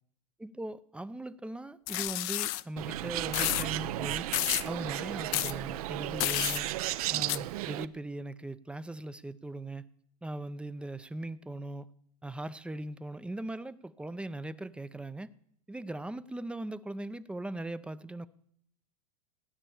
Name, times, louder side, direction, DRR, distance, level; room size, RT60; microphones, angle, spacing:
voice 1, 0.4-4.3 4.6-6.7 7.1-9.8 10.2-11.9 12.2-15.3 15.7-18.3, right 1 dB, 5° right, 14 dB, 0.5 m, -39 dB
sound 1, 1.9-2.6 3.3-3.7 4.3-4.7 5.3-5.5 6.2-6.6 7.3-7.4, left 17 dB, 45° left, 0.5 m, -30 dB
Bird, 2.8-7.9, right 14 dB, 65° right, 0.7 m, -34 dB
16.0 x 9.9 x 7.1 m, 0.69 s
hypercardioid pair, 120°, 20 cm